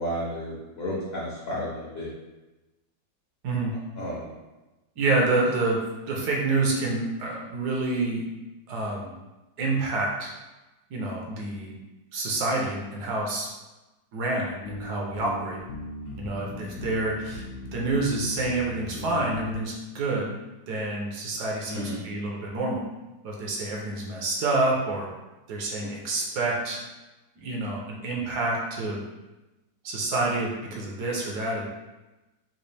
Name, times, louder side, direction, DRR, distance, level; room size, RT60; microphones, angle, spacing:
voice 1, 0.0-2.1 4.0-4.3 21.6-22.0, equal, 60° left, -5 dB, 0.6 m, -32 dB
voice 2, 5.0-5.8 6.1-8.2 8.7-9.1 9.6-10.3 10.9-11.7 12.1-13.5 14.1-15.6 16.2-17.4 17.7-20.3 20.7-22.8 23.2-25.1 25.5-26.8 27.4-29.0 29.8-31.7, right 2 dB, 70° right, -2 dB, 1.1 m, -28 dB
sound 1, 14.6-19.7, left 1 dB, 80° left, 1.3 m, -38 dB
4.0 x 2.4 x 3.2 m, 1.1 s
omnidirectional pair, 2.0 m